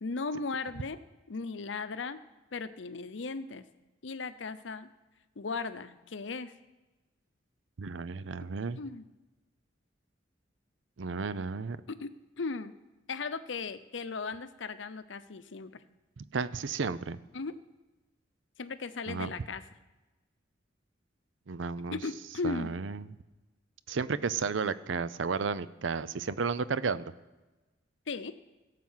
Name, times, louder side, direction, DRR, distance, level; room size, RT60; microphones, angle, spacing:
voice 1, 0.0-1.0 1.3-2.2 2.5-3.7 4.0-4.9 5.4-6.5 8.8-9.1 11.9-12.7 13.1-15.7 17.3-17.6 18.6-19.6 21.9-22.7 28.1-28.3, left 4 dB, 75° left, 12 dB, 0.7 m, -37 dB
voice 2, 7.8-8.8 11.0-11.8 16.2-17.2 19.1-19.3 21.5-22.0 22.4-23.1 23.9-27.1, right 5 dB, 80° right, 16 dB, 0.6 m, -33 dB
16.5 x 7.6 x 5.7 m, 1.1 s
head